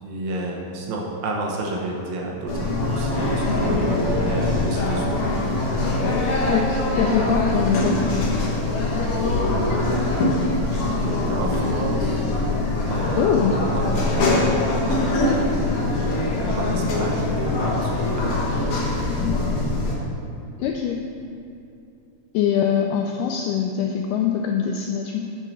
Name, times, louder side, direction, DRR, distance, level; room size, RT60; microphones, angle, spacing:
voice 1, 0.0-5.2 5.5-5.7 9.5-12.2 12.8-16.1 16.5-18.2 19.0-19.2, right 2 dB, 75° right, -2 dB, 2.7 m, -31 dB
sound 1, 2.5-19.9, left 2 dB, 70° left, 1.3 m, -23 dB
voice 2, 6.5-8.0 13.1-13.5 20.6-21.0 22.3-25.3, left 8 dB, 85° left, 2 dB, 1.9 m, -23 dB
7.4 x 6.6 x 6.2 m, 2.6 s
omnidirectional pair, 4.2 m